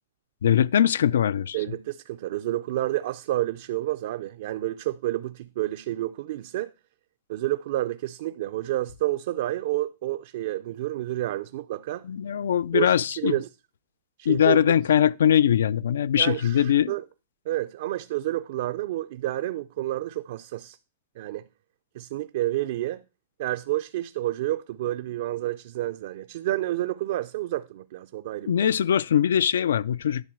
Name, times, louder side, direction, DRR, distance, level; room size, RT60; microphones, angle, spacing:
voice 1, 0.4-1.6 12.0-13.4 14.3-16.9 28.5-30.2, left 9 dB, 90° left, 0.4 m, -21 dB
voice 2, 1.5-6.7 7.3-12.0 12.7-13.5 14.2-14.7 16.2-17.0 17.5-20.8 21.2-21.4 21.9-23.0 23.4-28.5, right 15 dB, 60° right, 0.4 m, -29 dB
10.5 x 3.8 x 7.5 m
supercardioid pair, 150°, 0 cm